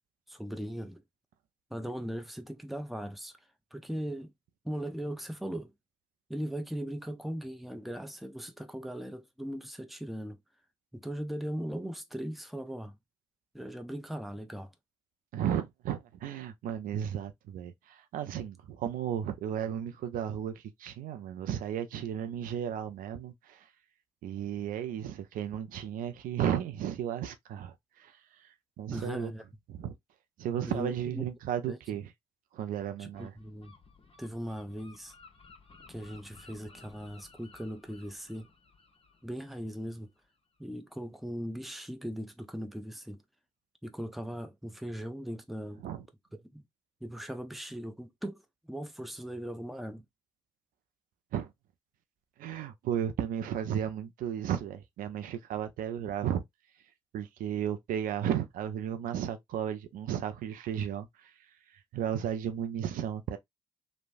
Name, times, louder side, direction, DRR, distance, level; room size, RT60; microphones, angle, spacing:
voice 1, 0.3-1.0 1.7-3.3 3.7-4.3 4.6-5.7 6.3-10.4 10.9-13.0 13.5-14.7 28.9-29.4 30.6-31.2 31.7-31.8 33.0-33.7 34.2-35.1 35.9-38.5 39.2-40.1 40.6-43.2 43.8-45.9 46.3-46.6 47.0-50.0, equal, ahead, 0.6 m, -39 dB
voice 2, 15.3-23.7 24.2-29.3 29.7-30.0 30.4-32.1 32.5-33.3 45.8-46.0 51.3-51.5 52.4-56.4 57.1-63.4, right 9 dB, 65° right, 0.5 m, -34 dB
Gull seagull, 33.1-40.6, left 4 dB, 40° left, 1.0 m, -57 dB
3.1 x 2.1 x 2.5 m
hypercardioid pair, 40°, 15 cm